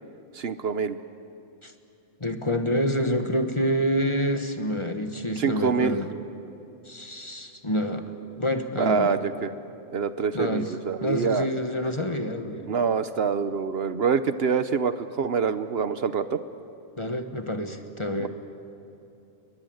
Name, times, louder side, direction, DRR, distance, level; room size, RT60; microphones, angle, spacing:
voice 1, 0.3-1.0 5.4-6.0 8.8-9.5 9.9-11.5 12.6-16.4 18.2-18.3, right 6 dB, 60° right, 12 dB, 1.0 m, -26 dB
voice 2, 2.2-6.1 6.9-8.0 8.4-9.1 10.3-10.7 11.0-12.7 17.0-18.3, equal, 25° left, 6 dB, 1.4 m, -27 dB
30.0 x 21.5 x 7.9 m, 2.8 s
omnidirectional pair, 1.2 m